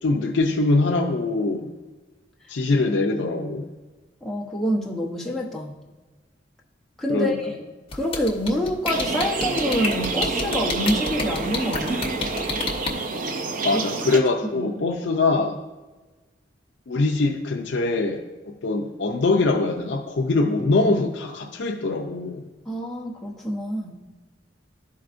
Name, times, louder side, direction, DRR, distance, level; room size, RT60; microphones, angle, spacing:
voice 1, 0.0-1.7 2.5-3.7 7.1-7.4 13.6-15.6 16.9-22.4, left 3 dB, 70° left, 1 dB, 0.5 m, -23 dB
voice 2, 4.2-5.8 7.0-7.6 7.9-12.2 13.7-13.8 14.5-14.9 22.7-24.0, equal, ahead, -4 dB, 0.8 m, -27 dB
sound 1, 7.9-12.9, left 4 dB, 30° left, 0.8 m, -28 dB
sound 2, 8.9-14.2, right 3 dB, 45° right, 0.5 m, -28 dB
12.0 x 4.6 x 2.5 m, 1.2 s
head